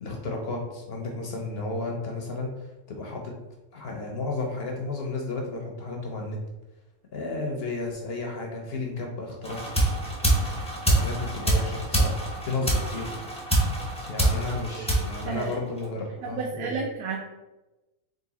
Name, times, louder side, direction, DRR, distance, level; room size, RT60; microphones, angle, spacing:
voice 1, 0.0-3.3 3.7-6.4 7.1-9.6 10.9-13.1 14.1-16.8, left 3 dB, 55° left, 1 dB, 0.7 m, -33 dB
sound 1, 9.4-16.0, right 1 dB, 5° left, 0.5 m, -26 dB
voice 2, 16.2-17.2, right 5 dB, 85° right, 0 dB, 1.0 m, -31 dB
3.8 x 2.6 x 3.9 m, 1.1 s
omnidirectional pair, 1.5 m